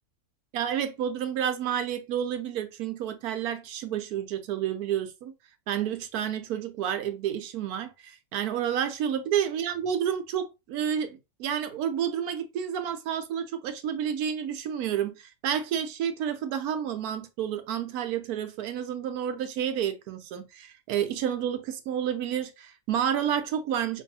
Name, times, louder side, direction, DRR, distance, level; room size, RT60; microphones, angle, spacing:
voice 1, 0.5-5.3 5.7-24.0, right 9 dB, 80° right, 1.2 m, -30 dB
4.7 x 2.6 x 2.7 m
omnidirectional pair, 1.6 m